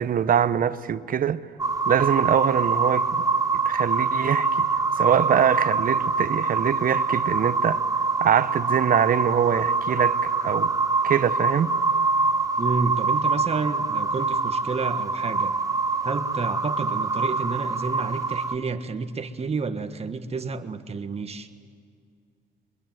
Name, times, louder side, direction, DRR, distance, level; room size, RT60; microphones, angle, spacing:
voice 1, 0.0-1.5 1.9-3.3 3.6-4.7 5.0-7.8 8.2-10.7 11.0-11.7, right 8 dB, 50° right, 1.0 m, -23 dB
sound 1, 1.6-18.6, right 4 dB, 20° right, 1.0 m, -24 dB
voice 2, 12.6-15.5 16.0-21.5, right 4 dB, 35° right, 1.6 m, -30 dB
24.0 x 21.0 x 9.4 m
cardioid pair, 85°, 19 cm